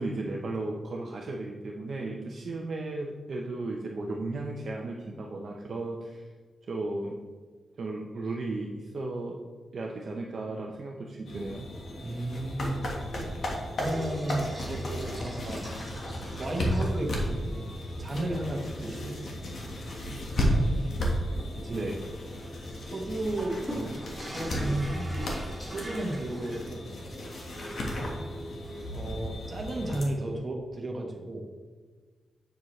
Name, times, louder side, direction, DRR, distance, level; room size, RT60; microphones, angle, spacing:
voice 1, 0.0-6.2 6.7-7.2 7.8-9.3 9.7-11.7 21.7-22.0, right 2 dB, 50° right, -1 dB, 0.7 m, -35 dB
sound 1, 11.3-30.0, equal, 50° left, 1.4 m, -33 dB
voice 2, 12.0-12.9 13.8-15.6 16.4-17.7 18.0-19.2 21.5-21.9 22.9-24.0 24.3-25.1 25.7-26.8 28.9-31.4, right 1 dB, 30° right, 0 dB, 1.3 m, -33 dB
sound 2, 13.8-17.4 17.8-17.9 18.4-18.5 19.0-26.7, right 1 dB, 5° left, 2.3 m, -42 dB
7.7 x 7.2 x 3.2 m, 1.5 s
wide cardioid pair, 170°, 0 cm